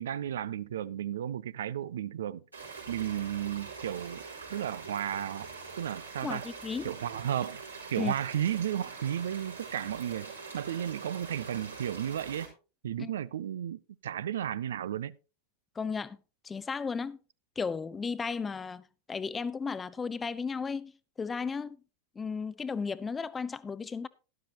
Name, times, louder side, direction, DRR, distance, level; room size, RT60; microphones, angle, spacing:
voice 1, 0.0-2.4 2.9-4.2 4.5-5.5 5.8-6.5 6.8-7.6 7.9-12.5 12.8-15.2, right 10 dB, 60° right, 0.4 m, -33 dB
sound 1, 2.5-12.5, right 4 dB, 85° right, 4.4 m, -44 dB
voice 2, 6.2-6.9 8.0-8.1 13.0-13.1 15.8-16.2 16.4-17.2 17.6-20.9 21.2-21.8 22.2-24.1, left 5 dB, 15° left, 0.6 m, -34 dB
12.5 x 11.5 x 2.9 m
figure-of-eight pair, 90°, 0 cm